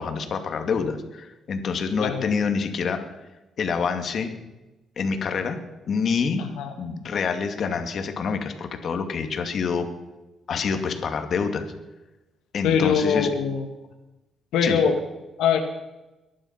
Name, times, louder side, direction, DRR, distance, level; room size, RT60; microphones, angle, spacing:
voice 1, 0.0-3.0 3.6-4.3 5.0-5.6 5.9-6.5 6.8-9.9 10.5-11.6 12.5-13.3 14.6-14.8, left 5 dB, 55° left, 6 dB, 2.3 m, -26 dB
voice 2, 6.4-6.7 12.6-13.7 14.5-14.9 15.4-15.6, left 7 dB, 85° left, 4 dB, 1.5 m, -22 dB
22.0 x 11.0 x 5.9 m, 1.0 s
cardioid pair, 90°, 0 cm